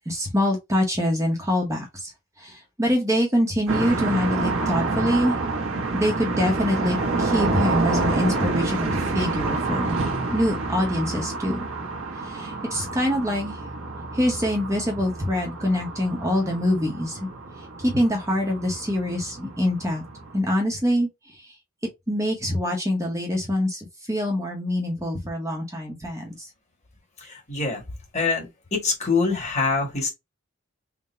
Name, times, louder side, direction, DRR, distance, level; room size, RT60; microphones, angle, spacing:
voice 1, 0.1-2.1 2.4-5.4 5.9-9.9 10.3-11.6 12.2-13.6 14.1-17.3 17.8-20.0 20.3-21.5 22.1-26.5, left 1 dB, 15° right, 0.8 m, -25 dB
sound 1, 3.7-20.4, right 3 dB, 75° right, 1.0 m, -28 dB
voice 2, 27.2-27.8 28.1-28.5 28.7-30.1, left 4 dB, 30° left, 1.5 m, -24 dB
3.7 x 2.1 x 4.1 m
head